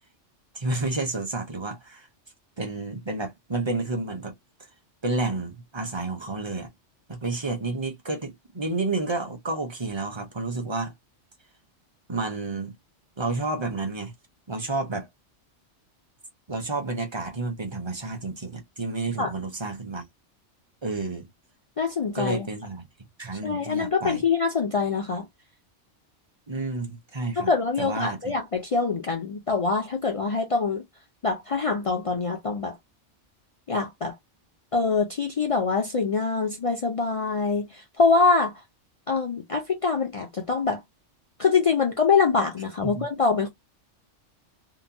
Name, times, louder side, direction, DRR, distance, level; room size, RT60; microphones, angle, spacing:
voice 1, 0.5-2.1 2.6-4.3 5.0-6.7 7.1-10.9 12.1-12.8 13.2-14.1 14.5-15.1 16.5-20.0 20.8-21.3 22.1-22.8 23.2-24.2 26.5-27.5 27.8-28.3 42.8-43.1, right 3 dB, 30° right, 0.6 m, -30 dB
voice 2, 21.8-22.5 23.4-25.3 27.4-30.8 31.2-32.8 33.7-34.1 34.7-37.7 38.0-38.5 39.1-40.8 41.4-43.5, left 4 dB, 55° left, 0.3 m, -24 dB
2.9 x 2.1 x 2.5 m
omnidirectional pair, 1.2 m